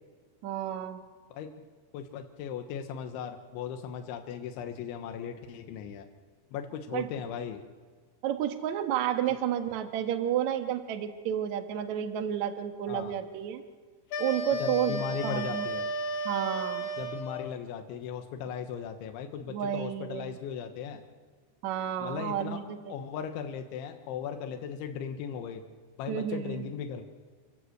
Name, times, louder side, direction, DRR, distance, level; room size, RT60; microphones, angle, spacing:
voice 1, 0.4-1.0 6.9-7.1 8.2-13.6 14.2-15.7 16.3-16.9 19.5-20.4 21.6-22.9 26.1-26.7, right 10 dB, 65° right, 7 dB, 1.9 m, -31 dB
voice 2, 1.9-6.1 6.5-7.6 12.9-13.1 14.6-15.9 17.0-21.0 22.0-22.6 22.9-25.6 26.0-27.0, left 7 dB, 85° left, 5 dB, 3.7 m, -37 dB
sound 1, 14.1-17.6, right 1 dB, 65° left, 3.9 m, -33 dB
29.5 x 13.0 x 8.1 m, 1.5 s
omnidirectional pair, 5.3 m